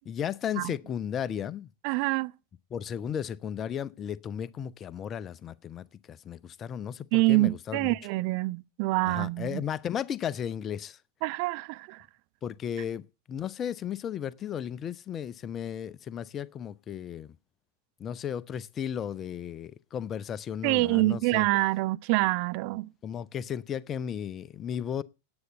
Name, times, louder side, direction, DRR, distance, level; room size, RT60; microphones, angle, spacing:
voice 1, 0.1-1.7 2.7-8.0 9.0-11.0 12.4-13.0 13.3-17.4 18.0-21.5 23.0-25.0, left 9 dB, 25° left, 0.6 m, -35 dB
voice 2, 1.8-2.3 7.1-9.6 11.2-12.0 20.6-22.9, right 22 dB, 45° right, 0.5 m, -26 dB
9.7 x 7.9 x 8.0 m
figure-of-eight pair, 90°, 0 cm